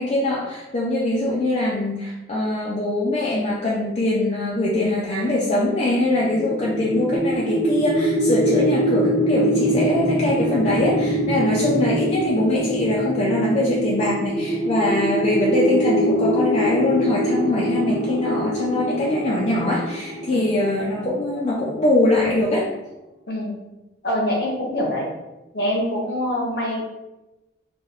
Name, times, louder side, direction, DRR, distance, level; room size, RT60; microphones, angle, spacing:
voice 1, 0.0-22.7, left 2 dB, 35° left, -5 dB, 0.3 m, -22 dB
sound 1, 6.1-21.2, right 1 dB, 35° right, 0.7 m, -23 dB
voice 2, 23.3-23.6 24.0-25.1 25.5-26.9, left 1 dB, 60° left, -2 dB, 0.8 m, -25 dB
3.3 x 2.2 x 2.3 m, 1.0 s
head